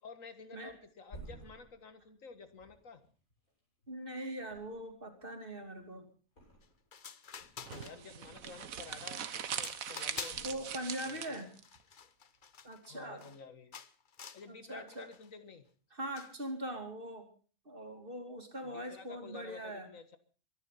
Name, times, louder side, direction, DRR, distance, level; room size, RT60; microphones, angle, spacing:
voice 1, 0.0-3.0 7.7-11.5 12.9-13.7 14.3-15.6 18.6-20.2, left 4 dB, 70° left, 10 dB, 1.9 m, -51 dB
Thump thud, 0.7-4.0 4.4-5.2 5.5-6.9 7.3-8.8 9.2-9.7 10.3-11.3 11.6-11.8, right 2 dB, 90° left, 7.5 m, -56 dB
voice 2, 3.9-6.0 10.4-11.5 12.6-13.3 14.5-15.1 15.9-17.3 17.6-19.9, right 1 dB, 40° right, 5 dB, 3.0 m, -41 dB
sound 1, 6.6-6.7 6.9-8.3 8.7-9.1 9.5-10.6 10.9-13.4 13.7-14.5 14.9-15.3 16.2-16.4, left 7 dB, 45° left, 0.9 m, -49 dB
sound 2, 7.6-11.6, right 8 dB, 80° right, 1.5 m, -41 dB
23.5 x 10.5 x 5.7 m, 0.42 s
omnidirectional pair, 1.4 m